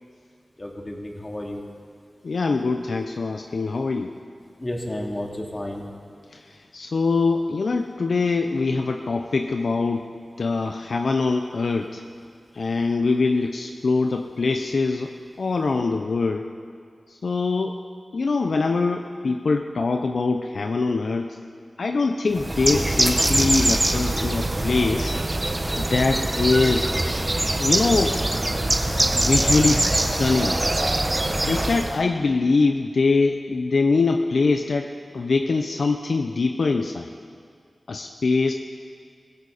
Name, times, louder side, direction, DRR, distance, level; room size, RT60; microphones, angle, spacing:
voice 1, 0.6-1.7 4.6-5.9, left 1 dB, 30° left, -1 dB, 2.9 m, -32 dB
voice 2, 2.2-4.1 6.3-10.1 10.4-12.0 12.5-16.5 17.1-17.8 18.1-21.4 21.8-25.1 25.8-26.9 27.6-28.2 28.6-28.7 29.1-30.6 31.4-37.1 37.9-38.5, left 3 dB, 70° left, 5 dB, 0.7 m, -23 dB
Bird, 22.3-32.0, right 1 dB, 30° right, 1.2 m, -23 dB
21.5 x 16.0 x 4.2 m, 2.1 s
cardioid pair, 50°, 0 cm